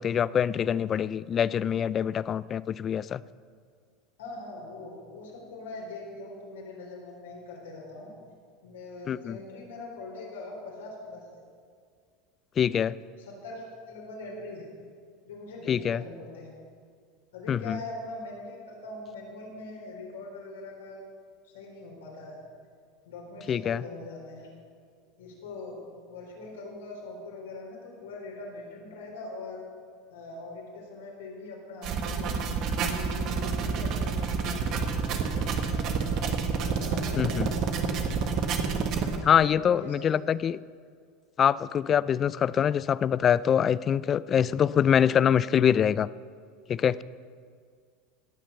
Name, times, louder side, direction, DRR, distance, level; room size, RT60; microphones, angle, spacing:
voice 1, 0.0-3.2 9.1-9.4 12.6-12.9 15.7-16.0 17.5-17.8 23.5-23.8 37.2-37.5 39.2-40.6 41.4-46.1 46.7-47.0, left 8 dB, 35° left, 19 dB, 0.4 m, -24 dB
voice 2, 4.2-8.1 8.6-11.4 13.2-14.7 15.2-16.5 17.3-21.0 21.4-22.4 23.0-24.5 25.2-25.8 26.1-29.7 30.1-32.4 32.8-36.0 36.6-38.2 39.1-40.3 44.7-45.0, left 2 dB, 85° left, -2 dB, 4.1 m, -42 dB
sound 1, 31.8-39.2, right 5 dB, 50° right, 1.4 m, -28 dB
18.0 x 6.2 x 7.0 m, 2.1 s
hypercardioid pair, 95°, 0 cm